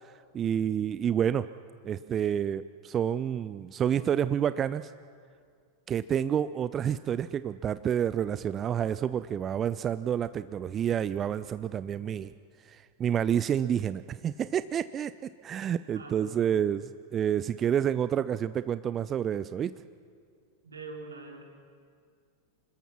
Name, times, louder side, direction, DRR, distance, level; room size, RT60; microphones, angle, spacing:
voice 1, 0.0-1.5 1.8-4.9 5.9-12.3 12.6-15.1 15.4-19.7, right 9 dB, 25° right, 14 dB, 0.4 m, -29 dB
voice 2, 15.9-16.4 20.6-21.4, right 3 dB, 75° right, 1 dB, 3.6 m, -43 dB
26.5 x 21.0 x 6.0 m, 2.2 s
figure-of-eight pair, 90°, 0 cm